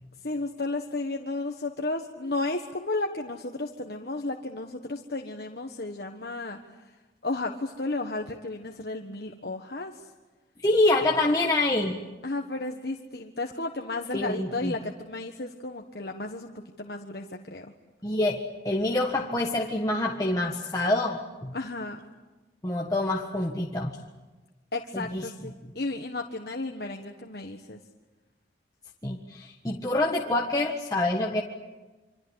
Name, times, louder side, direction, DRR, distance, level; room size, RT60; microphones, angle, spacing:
voice 1, 0.2-7.0 7.2-10.1 12.2-17.7 21.5-22.0 24.7-27.8, left 2 dB, 60° left, 3 dB, 1.4 m, -33 dB
voice 2, 10.6-12.0 14.1-14.7 18.0-21.5 22.6-24.0 24.9-25.2 29.0-31.4, left 2 dB, 20° left, -1 dB, 1.6 m, -26 dB
27.0 x 26.0 x 8.2 m, 1.2 s
head